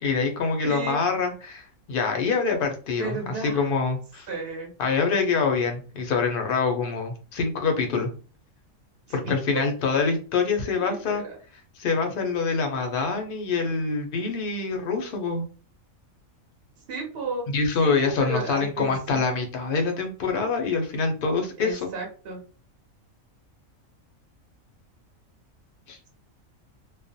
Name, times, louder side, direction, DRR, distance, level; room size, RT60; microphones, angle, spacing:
voice 1, 0.0-3.2 3.4-4.3 4.8-8.1 9.1-11.2 11.8-15.5 17.5-21.8 25.9-26.0, left 4 dB, 55° left, 4 dB, 0.6 m, -25 dB
voice 2, 0.6-1.0 3.0-3.7 4.3-4.7 9.1-9.3 10.8-11.4 16.8-17.5 17.8-19.2 21.6-22.4, right 3 dB, 55° right, 1 dB, 0.8 m, -33 dB
2.3 x 2.1 x 2.6 m, 0.37 s
omnidirectional pair, 1.4 m